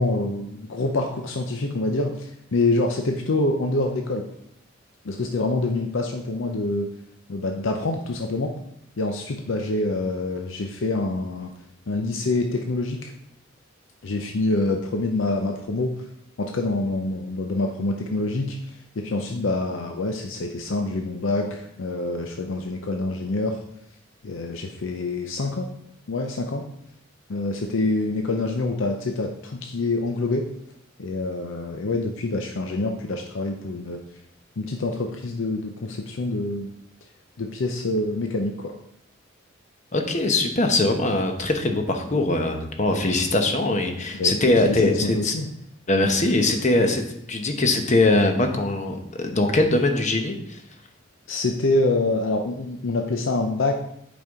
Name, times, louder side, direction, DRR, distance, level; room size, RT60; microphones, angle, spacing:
voice 1, 0.0-4.2 5.0-6.9 7.3-8.5 9.0-11.5 11.9-13.1 14.0-16.0 16.4-23.6 24.2-25.7 26.1-26.7 27.3-30.5 31.0-34.0 34.6-36.7 37.4-38.7 44.2-45.5 51.3-53.7, left 2 dB, 75° left, 3 dB, 0.6 m, -26 dB
voice 2, 39.9-45.3 45.9-47.0 47.3-50.6, left 2 dB, 35° left, 5 dB, 0.9 m, -21 dB
8.2 x 5.3 x 3.6 m, 0.73 s
head